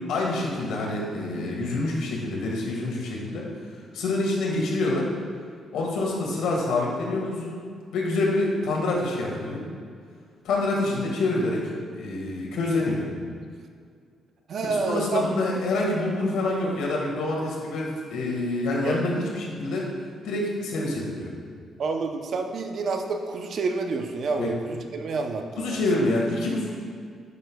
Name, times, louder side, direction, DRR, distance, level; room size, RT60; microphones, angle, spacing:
voice 1, 0.1-3.4 3.9-5.1 5.7-7.5 7.9-9.6 10.4-11.6 11.9-13.1 14.9-19.8 20.2-21.3 24.4-24.5 25.6-26.8, left 2 dB, 85° left, -2 dB, 1.7 m, -26 dB
voice 2, 14.5-15.3 18.8-19.0 21.8-25.8, right 4 dB, 60° right, 5 dB, 0.6 m, -28 dB
10.5 x 6.2 x 2.3 m, 2.1 s
cardioid pair, 90°, 0 cm